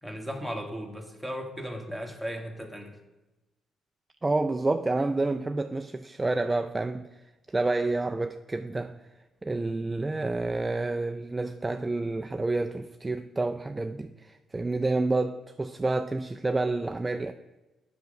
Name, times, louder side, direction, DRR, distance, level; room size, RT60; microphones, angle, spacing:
voice 1, 0.0-3.0, equal, ahead, 3 dB, 1.5 m, -36 dB
voice 2, 4.2-7.2 7.5-9.0 9.4-17.3, right 2 dB, 20° right, 7 dB, 0.4 m, -29 dB
8.0 x 5.1 x 6.5 m, 1.1 s
cardioid pair, 80°, 0 cm